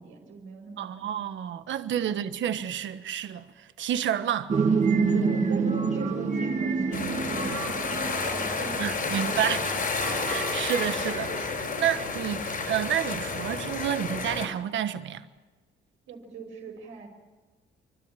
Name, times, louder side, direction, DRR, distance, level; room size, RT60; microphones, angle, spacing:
voice 1, 0.0-1.1 2.0-2.1 5.1-9.7 12.3-12.5 16.1-17.1, right 4 dB, 85° right, 5.6 m, -41 dB
voice 2, 0.8-4.5 8.8-9.6 10.3-15.3, right 10 dB, 70° right, 1.3 m, -30 dB
sound 1, 4.5-11.4, right 5 dB, 35° right, 2.4 m, -28 dB
sound 2, 6.9-14.5, left 4 dB, 45° left, 4.5 m, -31 dB
28.5 x 12.5 x 9.1 m
cardioid pair, 90°, 20 cm